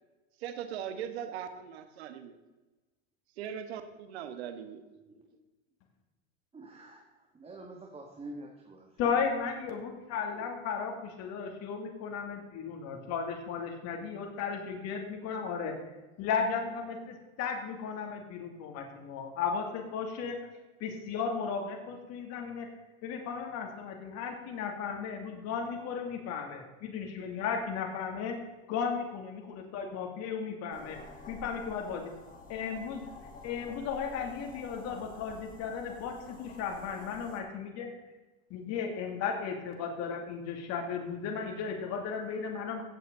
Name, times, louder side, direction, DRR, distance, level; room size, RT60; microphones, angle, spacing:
voice 1, 0.4-2.4 3.4-4.8, right 9 dB, 85° right, 9 dB, 1.5 m, -39 dB
voice 2, 6.5-9.2 10.3-10.5, right 2 dB, 20° right, 0 dB, 1.9 m, -47 dB
voice 3, 9.0-15.7 16.2-20.4 20.8-22.7 23.0-28.4 28.7-31.0 31.3-32.1 32.5-33.1 33.4-37.9 38.5-42.8, left 6 dB, 55° left, 3 dB, 2.6 m, -35 dB
sound 1, 30.7-37.4, left 2 dB, 25° left, 2.1 m, -49 dB
16.0 x 8.0 x 3.9 m, 1.2 s
supercardioid pair, 115°, 31 cm